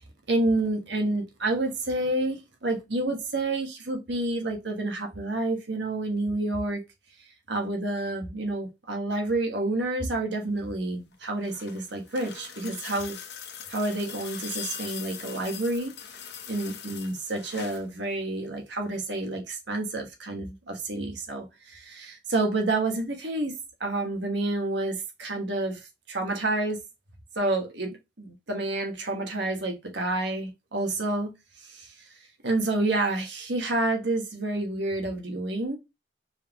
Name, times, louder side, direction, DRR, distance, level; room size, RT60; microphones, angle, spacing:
voice 1, 0.3-6.8 7.5-13.2 13.7-15.9 16.5-23.5 23.8-25.8 26.1-26.8 27.3-31.3 31.6-31.9 32.4-35.8, right 2 dB, 70° right, 1.3 m, -29 dB
sound 1, 11.1-17.9 19.2-19.3, left 7 dB, 60° left, 0.8 m, -41 dB
4.7 x 3.6 x 2.9 m
head